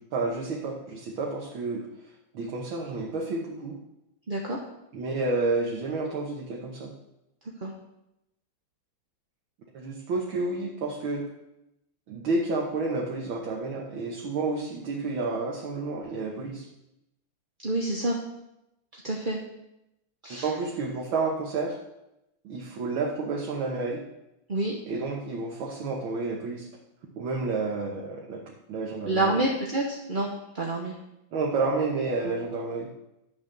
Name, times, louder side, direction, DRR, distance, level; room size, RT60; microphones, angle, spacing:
voice 1, 0.0-1.9 2.3-3.8 4.9-6.9 9.7-11.3 12.1-16.6 20.3-21.8 22.4-24.0 24.9-26.7 27.2-28.4 28.7-29.4 31.3-32.9, right 3 dB, 70° right, -1 dB, 2.0 m, -30 dB
voice 2, 4.3-4.6 7.6-7.7 17.6-18.2 18.9-19.4 20.2-20.5 24.5-24.7 29.1-31.0 32.2-32.3, right 2 dB, 35° right, -1 dB, 0.9 m, -28 dB
10.5 x 6.1 x 6.6 m, 0.87 s
omnidirectional pair, 2.3 m